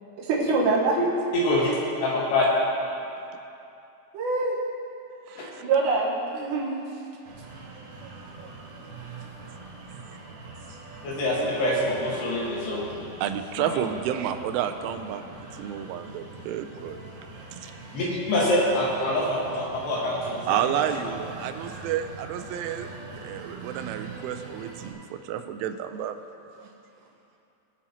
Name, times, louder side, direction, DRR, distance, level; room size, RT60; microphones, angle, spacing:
voice 1, 0.2-1.0 4.1-4.6 5.3-6.7, right 3 dB, 75° right, -3 dB, 3.3 m, -25 dB
voice 2, 1.3-1.7 2.0-2.4 5.4-5.5 11.0-12.9 13.6-13.8 17.9-20.8, left 1 dB, 65° left, -5 dB, 3.3 m, -25 dB
voice 3, 5.3-5.6 7.8-8.1 8.4-8.5 13.2-17.0 17.6-17.7 20.5-22.9 23.2-26.2, right 10 dB, 90° right, 8 dB, 3.1 m, -31 dB
sound 1, 7.2-24.9, right 3 dB, 50° right, 3.5 m, -43 dB
21.0 x 7.2 x 2.9 m, 2.7 s
omnidirectional pair, 5.5 m